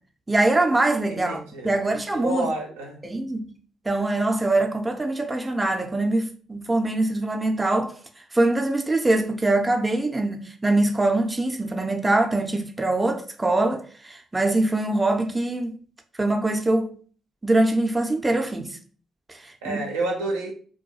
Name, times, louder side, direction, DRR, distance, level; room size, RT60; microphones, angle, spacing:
voice 1, 0.3-2.5 3.0-3.5 3.9-7.9 8.3-15.8 16.2-16.9 17.4-18.8 19.3-19.8, right 2 dB, 20° right, 0.5 m, -23 dB
voice 2, 1.1-1.7 2.1-3.0 19.6-20.5, right 2 dB, 80° right, 0.5 m, -29 dB
2.3 x 2.3 x 2.7 m
hypercardioid pair, 45°, 0 cm